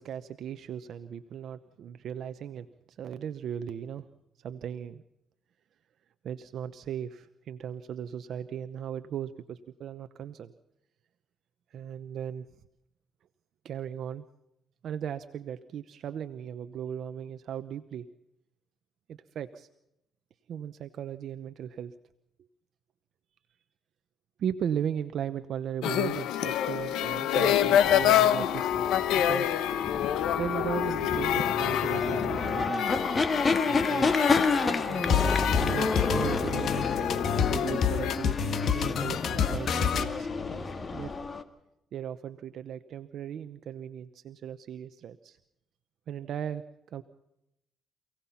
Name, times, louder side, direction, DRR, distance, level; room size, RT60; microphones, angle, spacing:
voice 1, 0.0-4.1 4.4-5.0 6.2-10.5 11.7-12.5 13.6-14.2 14.8-18.1 19.1-19.7 20.5-21.9 24.4-29.5 30.4-32.8 33.7-34.2 34.9-36.9 37.5-40.4 40.9-41.1 41.9-45.4 46.1-46.6 46.9-47.0, right 9 dB, 70° right, 10 dB, 0.9 m, -37 dB
sound 1, 25.8-38.2, left 10 dB, 85° left, 1.1 m, -28 dB
sound 2, 27.8-41.4, left 4 dB, 35° left, 2.0 m, -30 dB
sound 3, 35.1-40.1, left 7 dB, 65° left, 1.8 m, -28 dB
28.0 x 17.5 x 5.8 m, 0.84 s
cardioid pair, 90°, 0 cm